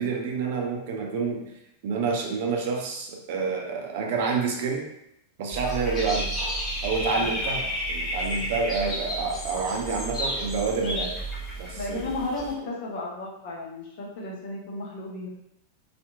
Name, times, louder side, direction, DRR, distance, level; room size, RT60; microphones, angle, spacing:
voice 1, 0.0-1.5 1.8-4.8 5.4-6.3 6.8-11.1 11.6-12.2, right 4 dB, 50° right, 1 dB, 0.5 m, -28 dB
Dog / Bird, 5.5-12.5, equal, 20° left, 0.9 m, -31 dB
voice 2, 7.1-7.4 10.8-11.1 11.7-15.3, left 2 dB, 50° left, -2 dB, 0.7 m, -34 dB
2.8 x 2.5 x 2.2 m, 0.79 s
figure-of-eight pair, 90°, 0 cm